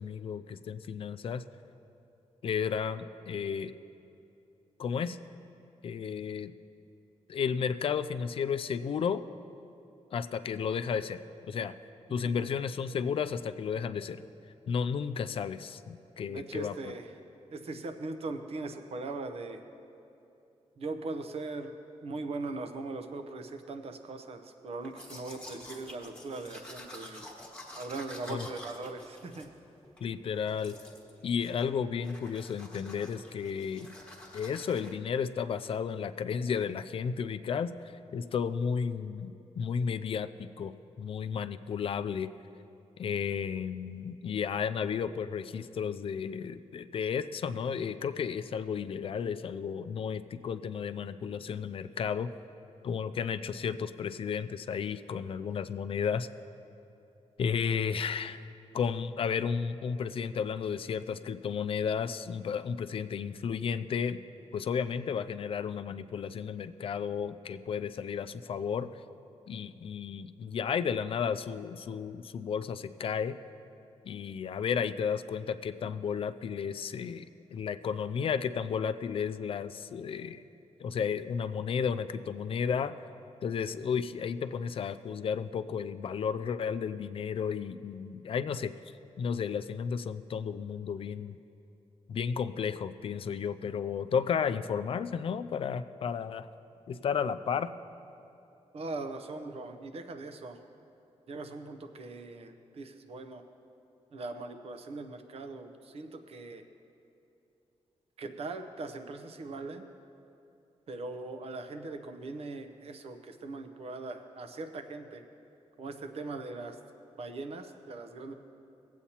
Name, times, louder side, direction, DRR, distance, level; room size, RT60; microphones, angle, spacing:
voice 1, 0.0-1.4 2.4-3.7 4.8-5.2 5.8-6.5 7.3-9.2 10.1-11.2 11.5-11.8 12.1-14.2 14.7-16.8 28.3-28.5 30.0-30.8 31.2-33.9 34.3-40.7 41.0-42.3 43.0-52.3 52.8-56.3 57.4-58.4 58.7-64.2 64.5-68.9 69.5-73.4 74.1-80.4 80.8-82.9 83.4-88.7 89.2-91.4 92.1-96.5 96.9-97.7, left 6 dB, 55° left, 11 dB, 0.4 m, -33 dB
voice 2, 12.1-12.5 16.3-17.1 17.5-19.6 20.8-21.7 22.0-27.3 27.7-29.5 98.7-100.6 101.3-103.4 104.1-106.6 108.2-109.9 110.9-115.2 115.8-116.8 117.2-118.3, right 3 dB, 60° right, 7 dB, 0.7 m, -40 dB
Domestic sounds home sounds, 24.8-30.1 30.5-31.1 31.4-31.8 32.0-34.9, left 1 dB, 10° left, 1.3 m, -49 dB
19.0 x 8.2 x 2.9 m, 2.7 s
wide cardioid pair, 125°, 11 cm